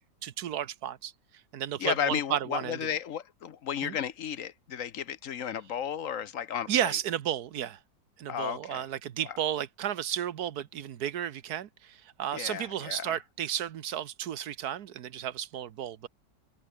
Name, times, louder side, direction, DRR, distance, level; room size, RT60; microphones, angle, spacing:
voice 1, 0.2-1.1 1.5-2.8 3.8-4.0 6.7-7.8 8.2-16.1, right 10 dB, 65° right, 1.4 m, -33 dB
voice 2, 1.8-6.7 8.3-8.8 12.3-13.1, left 9 dB, 55° left, 1.1 m, -33 dB
omnidirectional pair, 1.9 m